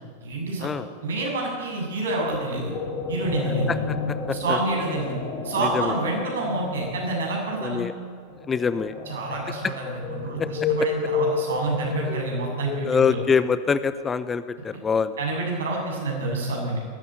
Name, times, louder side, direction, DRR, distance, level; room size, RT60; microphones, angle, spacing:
voice 1, 0.2-0.7 1.0-2.7 3.1-3.8 4.4-5.2 5.4-7.8 9.1-13.2 15.2-16.8, right 2 dB, 65° right, -1 dB, 7.6 m, -28 dB
sound 1, 2.3-13.7, left 3 dB, 35° left, 3.9 m, -31 dB
voice 2, 3.7-4.6 5.6-5.9 7.6-7.9 8.5-8.9 10.4-10.5 12.9-15.1, left 6 dB, 20° left, 14 dB, 0.7 m, -25 dB
19.0 x 15.0 x 9.0 m, 2.2 s
figure-of-eight pair, 90°, 0 cm